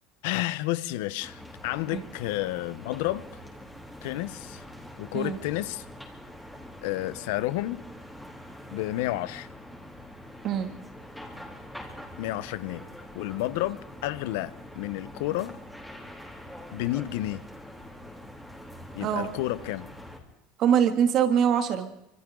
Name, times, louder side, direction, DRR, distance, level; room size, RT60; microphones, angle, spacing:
voice 1, 0.2-3.3 4.0-4.6 5.0-5.9 6.8-7.8 8.7-9.5 12.2-12.8 13.1-15.6 16.7-17.4 18.9-19.9, left 16 dB, 80° left, 16 dB, 0.9 m, -31 dB
sound 1, 1.2-20.2, left 1 dB, ahead, 3.4 m, -44 dB
voice 2, 20.6-21.9, right 8 dB, 45° right, 6 dB, 2.5 m, -23 dB
27.0 x 25.5 x 3.9 m, 0.83 s
cardioid pair, 145°, 0 cm